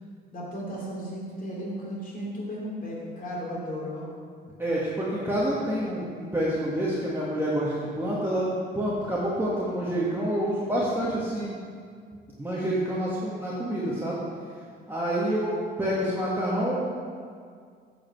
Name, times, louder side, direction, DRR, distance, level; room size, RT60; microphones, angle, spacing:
voice 1, 0.3-4.1, equal, 45° left, -4 dB, 2.7 m, -35 dB
voice 2, 4.6-11.6 12.4-14.2 14.9-15.5 15.8-16.9, right 1 dB, 10° right, -7 dB, 1.7 m, -27 dB
8.8 x 5.2 x 7.6 m, 2.1 s
cardioid pair, 90°, 20 cm